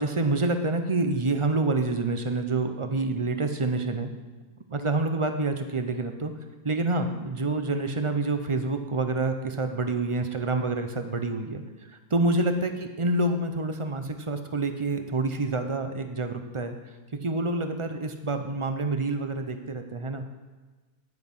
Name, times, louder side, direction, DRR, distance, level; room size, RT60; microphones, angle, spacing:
voice 1, 0.0-4.1 4.7-6.3 6.6-11.6 12.1-16.8 17.2-20.2, right 2 dB, 30° right, 7 dB, 0.7 m, -27 dB
10.5 x 9.4 x 5.6 m, 1.3 s
omnidirectional pair, 1.6 m